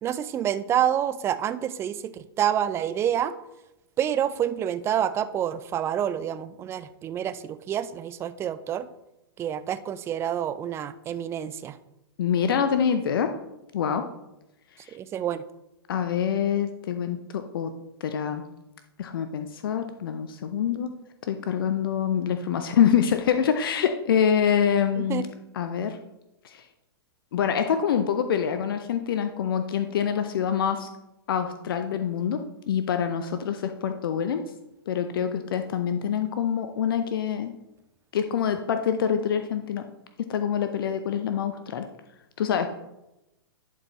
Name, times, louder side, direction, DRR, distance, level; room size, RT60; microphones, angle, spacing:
voice 1, 0.0-3.3 4.0-8.9 9.4-11.8 14.9-15.4 25.0-25.3, right 10 dB, 20° right, 13 dB, 0.4 m, -28 dB
voice 2, 12.2-13.4 13.7-14.0 14.8-15.0 15.9-17.7 18.0-18.4 19.0-20.9 21.3-25.2 25.5-26.0 26.4-26.6 27.3-30.9 31.3-32.4 32.7-34.4 34.9-37.5 38.1-39.8 40.3-41.9 42.4-42.7, left 8 dB, 60° left, 8 dB, 0.6 m, -25 dB
11.0 x 4.5 x 3.0 m, 0.92 s
figure-of-eight pair, 110°, 13 cm